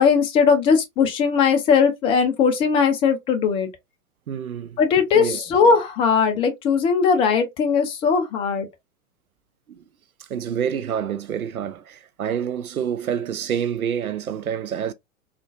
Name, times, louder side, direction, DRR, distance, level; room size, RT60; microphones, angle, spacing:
voice 1, 0.0-3.7 4.8-8.7, left 6 dB, 15° left, 0.4 m, -19 dB
voice 2, 4.3-4.8 5.1-5.4 9.7-9.8 10.3-14.9, right 8 dB, 85° right, 0.6 m, -27 dB
3.7 x 2.4 x 2.4 m
figure-of-eight pair, 100°, 42 cm